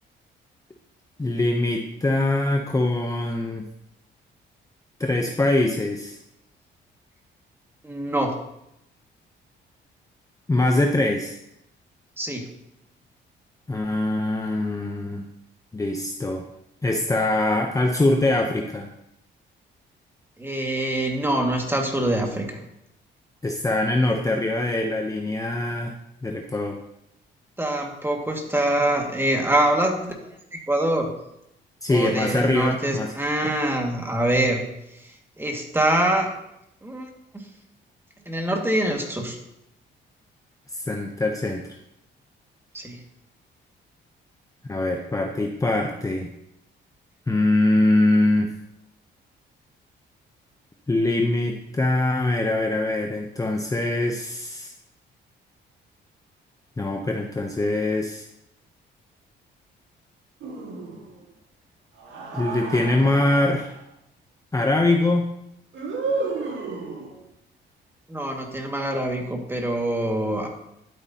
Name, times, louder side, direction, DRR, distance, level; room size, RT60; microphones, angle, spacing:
voice 1, 1.2-3.7 5.0-6.2 10.5-11.4 13.7-15.2 15.7-16.5 16.8-18.9 23.4-25.9 26.2-26.8 31.8-33.1 40.7-41.8 44.7-46.3 47.3-48.5 50.9-54.7 56.8-58.3 62.3-63.8 64.5-65.3, left 2 dB, 15° left, 3 dB, 0.8 m, -23 dB
voice 2, 7.8-8.3 12.2-12.4 20.4-22.6 27.6-30.3 30.7-31.1 31.9-34.6 35.4-36.3 36.8-37.1 38.3-39.4 42.7-43.0 68.1-70.5, right 1 dB, 10° right, 1 dB, 2.0 m, -24 dB
sound 1, 60.4-61.2 62.0-63.8 65.7-67.3, right 3 dB, 70° right, 2.1 m, -32 dB
12.5 x 8.1 x 2.9 m, 0.81 s
cardioid pair, 90°, 20 cm